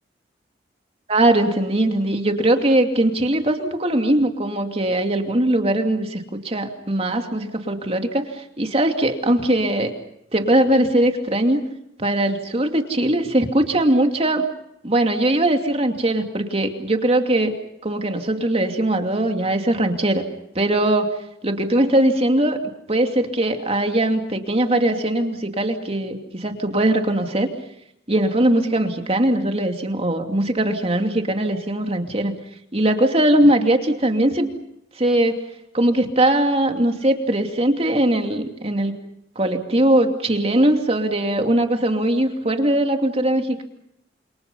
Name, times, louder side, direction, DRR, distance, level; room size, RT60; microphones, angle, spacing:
voice 1, 1.1-9.9 10.3-11.6 12.0-14.5 14.8-17.5 17.8-20.2 20.5-21.1 21.4-22.6 22.9-27.5 28.1-32.3 32.7-34.5 35.0-35.4 35.7-39.0 39.4-43.6, right 1 dB, 35° right, 5 dB, 2.7 m, -20 dB
29.0 x 28.0 x 5.5 m, 0.79 s
head